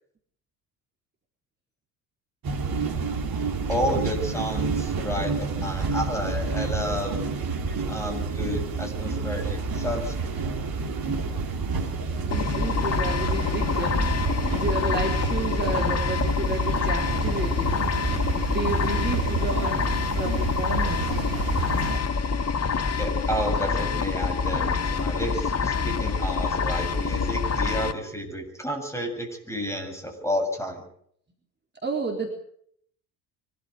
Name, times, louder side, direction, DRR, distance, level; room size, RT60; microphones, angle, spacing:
sound 1, 2.4-22.0, right 4 dB, 45° right, 3.6 m, -29 dB
voice 1, 3.7-7.2 7.9-10.3 23.0-30.9, equal, 5° left, 5 dB, 7.8 m, -31 dB
voice 2, 12.2-17.9 18.3-19.9 20.2-21.3 31.8-32.3, right 3 dB, 20° right, 1 dB, 4.1 m, -32 dB
sound 2, 12.3-27.9, left 5 dB, 30° left, 2.0 m, -26 dB
24.5 x 13.5 x 8.3 m, 0.65 s
figure-of-eight pair, 55°, 49 cm